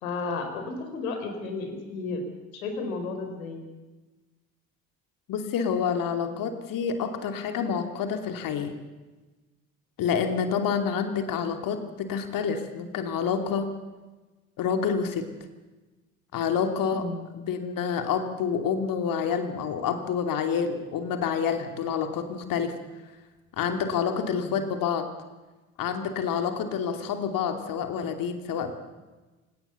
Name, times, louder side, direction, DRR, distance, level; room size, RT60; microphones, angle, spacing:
voice 1, 0.0-2.2 2.5-3.6 16.9-17.2 24.2-24.5, left 3 dB, 75° left, 6 dB, 4.4 m, -33 dB
voice 2, 5.3-8.7 10.0-13.7 14.6-15.3 16.3-17.1 17.5-22.7 23.6-25.1 25.8-28.7, left 7 dB, 50° left, 7 dB, 2.9 m, -28 dB
28.0 x 18.0 x 6.9 m, 1.2 s
figure-of-eight pair, 60°, 43 cm